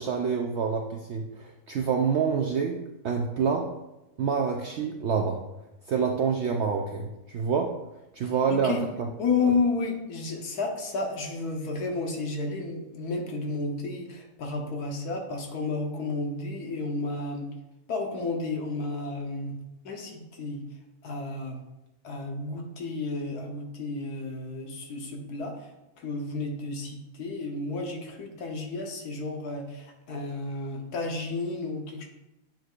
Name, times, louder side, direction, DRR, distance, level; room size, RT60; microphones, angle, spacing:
voice 1, 0.0-2.8 3.0-3.7 4.2-5.4 5.9-7.7 8.1-8.8, right 6 dB, 70° right, 2 dB, 0.6 m, -27 dB
voice 2, 8.5-8.8 9.2-17.5 17.9-19.5 19.8-20.6 21.0-21.6 22.0-25.7 26.0-32.0, left 3 dB, 75° left, 1 dB, 1.5 m, -31 dB
9.0 x 4.6 x 2.4 m, 0.94 s
omnidirectional pair, 1.7 m